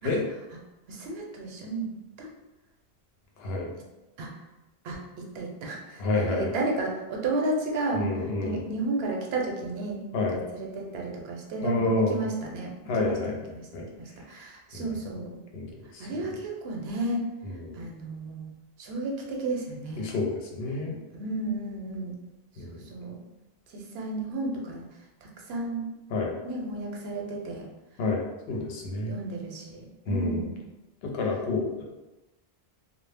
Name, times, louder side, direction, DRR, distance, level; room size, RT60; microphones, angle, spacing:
voice 1, 0.9-1.9 2.2-2.3 4.2-4.3 4.8-8.1 8.4-13.7 13.9-15.4 16.0-17.3 17.7-18.5 18.8-20.1 20.7-22.2 22.7-23.2 23.7-24.9 25.2-25.9 26.4-27.7 28.5-28.7 29.0-30.6, right 2 dB, 75° right, -1 dB, 0.8 m, -33 dB
voice 2, 3.4-3.7 6.0-6.5 7.9-8.6 10.1-10.4 11.6-12.2 12.9-13.9 14.7-15.0 15.5-16.2 17.4-17.9 20.0-21.0 22.6-22.8 26.1-26.4 28.0-29.1 30.1-30.4 31.1-31.9, left 3 dB, 80° left, 0 dB, 0.8 m, -29 dB
2.1 x 2.0 x 3.2 m, 1.0 s
omnidirectional pair, 1.0 m